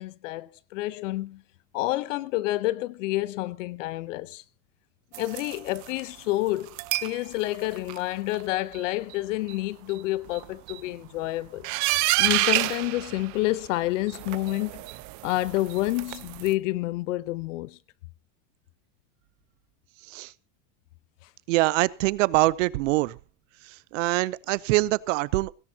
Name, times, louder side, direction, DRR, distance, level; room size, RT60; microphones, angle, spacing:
voice 1, 0.0-1.4 1.7-4.4 5.2-14.8 15.2-17.8 21.2-21.3, left 18 dB, 85° left, 0.9 m, -29 dB
sound 1, 5.1-6.0 6.7-7.2 7.5-8.0 8.3-8.4 8.7-8.8 9.1-9.2 9.5-9.6 9.9-10.0 10.3-10.8 11.6-13.8 14.1-16.5, right 19 dB, 50° right, 0.9 m, -29 dB
voice 2, 21.5-23.2 23.6-25.5, right 20 dB, 85° right, 0.8 m, -24 dB
17.5 x 17.0 x 2.9 m
supercardioid pair, 135°, 37 cm